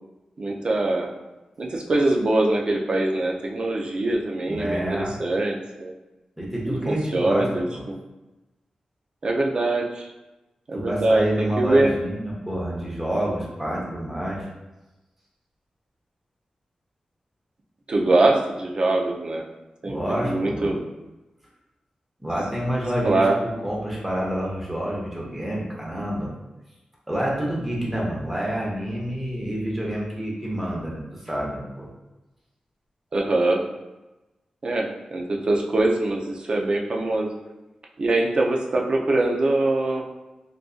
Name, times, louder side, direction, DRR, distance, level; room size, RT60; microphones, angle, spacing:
voice 1, 0.4-1.1 1.6-5.9 6.7-8.0 9.2-10.1 10.7-11.9 17.9-19.4 19.8-20.8 23.0-23.4 33.1-33.6 34.6-37.3 38.0-40.1, right 2 dB, 45° right, 0 dB, 0.4 m, -23 dB
voice 2, 4.5-5.1 6.4-7.5 7.7-7.8 10.7-14.5 19.8-20.8 22.2-26.3 27.1-31.9, equal, 10° right, -4 dB, 0.8 m, -28 dB
3.7 x 2.5 x 2.4 m, 1.0 s
wide cardioid pair, 140°, 2 cm